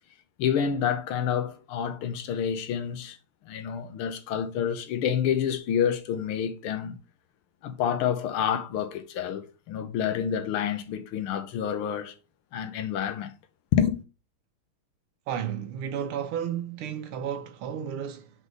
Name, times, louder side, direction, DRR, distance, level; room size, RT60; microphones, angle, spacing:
voice 1, 0.4-3.2 3.5-7.0 7.6-12.2 12.5-13.3 13.7-14.0, left 8 dB, 80° left, 1.8 m, -28 dB
voice 2, 15.3-18.3, right 9 dB, 80° right, 1.6 m, -32 dB
5.2 x 4.2 x 4.7 m
omnidirectional pair, 2.4 m